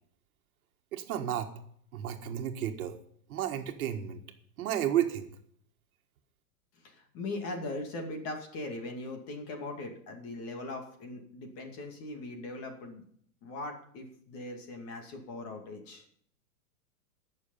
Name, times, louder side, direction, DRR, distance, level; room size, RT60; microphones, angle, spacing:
voice 1, 0.9-1.5 1.9-3.0 3.3-4.2 4.6-5.3, right 10 dB, 65° right, 6 dB, 1.7 m, -32 dB
voice 2, 6.8-13.0 13.4-16.1, left 2 dB, 30° left, 4 dB, 2.4 m, -40 dB
19.0 x 6.7 x 5.5 m, 0.63 s
supercardioid pair, 155°, 46 cm